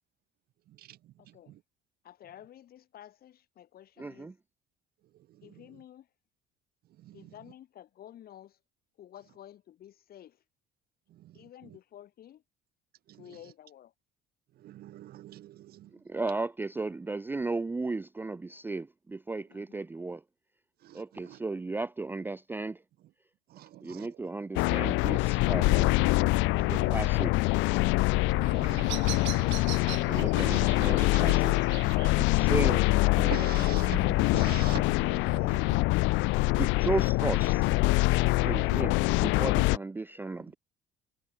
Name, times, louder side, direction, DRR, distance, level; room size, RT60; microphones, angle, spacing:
voice 1, 0.7-1.6 5.1-5.8 6.9-7.3 11.1-11.8 13.1-13.5 14.5-16.0 20.8-21.4 23.5-24.3 26.5-27.1 28.1-29.6 31.1-31.4 33.2-36.0 36.4-36.5, right 14 dB, 55° right, 0.7 m, -44 dB
voice 2, 1.2-1.6 2.0-4.3 5.4-6.1 7.1-8.6 9.0-10.4 11.3-12.4 13.1-13.9 19.5-19.9, left 11 dB, 55° left, 5.0 m, -51 dB
voice 3, 4.0-4.3 16.1-20.2 20.9-22.8 23.8-26.0 26.7-27.5 29.3-29.4 29.8-31.5 32.2-32.9 36.6-37.7 38.4-40.6, right 3 dB, 10° right, 0.4 m, -35 dB
sound 1, 24.6-39.8, left 23 dB, 85° left, 0.4 m, -25 dB
Bird vocalization bird call bird song, 28.3-34.3, right 18 dB, 80° right, 3.6 m, -44 dB
cardioid pair, 135°, 19 cm